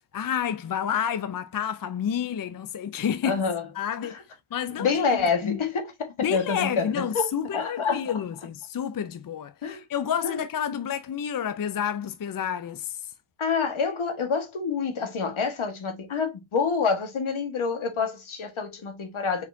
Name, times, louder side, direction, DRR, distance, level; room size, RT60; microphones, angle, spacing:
voice 1, 0.1-3.4 3.7-4.2 4.5-5.6 6.2-13.1, left 8 dB, 45° left, 0.5 m, -30 dB
voice 2, 3.2-3.7 4.0-4.1 4.8-8.0 9.6-9.8 10.2-10.4 13.4-19.5, left 5 dB, 70° left, 1.5 m, -27 dB
4.2 x 4.1 x 2.6 m
cardioid pair, 45°, 50 cm